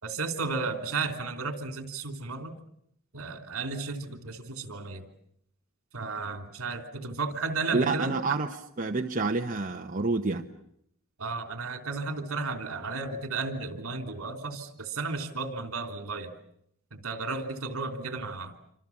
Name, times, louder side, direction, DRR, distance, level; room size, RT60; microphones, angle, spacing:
voice 1, 0.0-2.5 3.1-5.0 5.9-8.4 11.2-16.3 17.0-18.5, right 4 dB, 65° right, 6 dB, 3.2 m, -33 dB
voice 2, 7.7-8.5 8.8-10.4, right 3 dB, 35° right, 3 dB, 1.1 m, -28 dB
27.5 x 26.0 x 7.3 m, 0.73 s
head